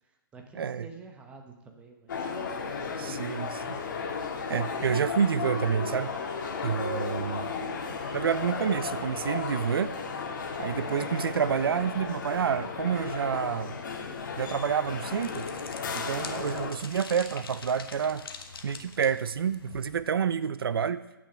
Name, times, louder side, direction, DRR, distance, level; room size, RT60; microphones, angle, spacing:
voice 1, 0.0-3.9, right 4 dB, 10° right, 3 dB, 0.8 m, -50 dB
voice 2, 0.5-0.9 3.0-3.8 4.5-6.1 6.6-7.5 8.1-9.9 10.6-13.7 14.4-15.5 15.9-18.2 18.6-21.0, right 7 dB, 80° right, 15 dB, 0.5 m, -28 dB
sound 1, 2.1-16.7, left 5 dB, 60° left, 1.5 m, -34 dB
sound 2, 4.2-13.3, right 1 dB, 25° right, 3.0 m, -56 dB
sound 3, 14.1-20.0, left 5 dB, 80° left, 1.0 m, -45 dB
8.3 x 6.1 x 5.6 m, 1.0 s
hypercardioid pair, 155°, 12 cm